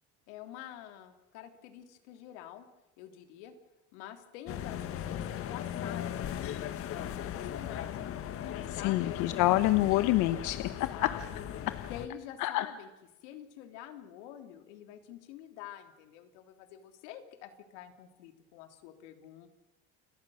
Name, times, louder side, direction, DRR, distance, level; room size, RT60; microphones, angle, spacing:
voice 1, 0.3-2.7 3.0-3.5 3.9-9.2 10.6-11.5 11.9-12.9 13.2-19.5, left 11 dB, 85° left, 6 dB, 3.4 m, -47 dB
sound 1, 4.5-12.1, left 10 dB, 40° left, 1.8 m, -38 dB
voice 2, 8.8-11.1 12.4-12.7, left 16 dB, 60° left, 11 dB, 1.2 m, -27 dB
29.5 x 23.0 x 6.5 m, 1.0 s
cardioid pair, 145°, 33 cm